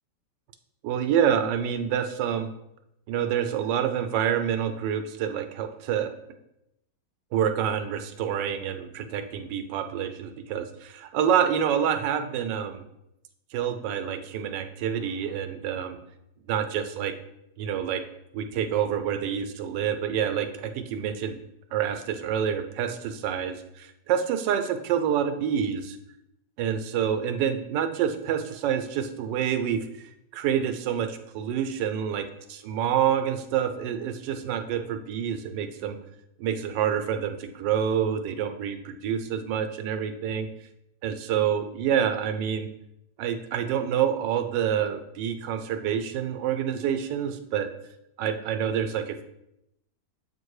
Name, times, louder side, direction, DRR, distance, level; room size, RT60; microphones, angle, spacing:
voice 1, 0.8-2.5 3.1-6.1 7.3-12.9 13.5-16.0 16.5-17.1 17.6-18.0 18.3-21.4 21.7-26.0 26.6-29.8 30.3-32.2 32.5-36.0 36.4-40.5 41.0-42.7 43.2-47.7 48.2-49.2, right 8 dB, 85° right, 7 dB, 1.2 m, -27 dB
7.8 x 2.6 x 4.7 m, 0.84 s
omnidirectional pair, 1.9 m